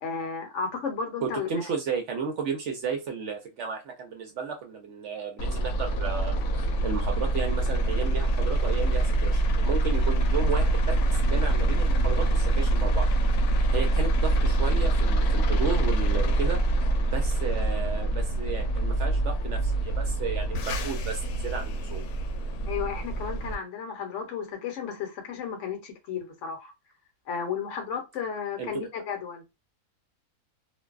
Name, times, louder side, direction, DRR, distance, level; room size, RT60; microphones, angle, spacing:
voice 1, 0.0-1.7 22.7-26.7 27.3-29.4, left 6 dB, 60° left, 1.0 m, -33 dB
voice 2, 1.2-13.4 13.7-22.0 28.6-28.8, right 5 dB, 65° right, 0.8 m, -33 dB
sound 1, 5.4-23.5, right 2 dB, 85° left, 1.1 m, -25 dB
2.5 x 2.2 x 2.3 m
omnidirectional pair, 1.6 m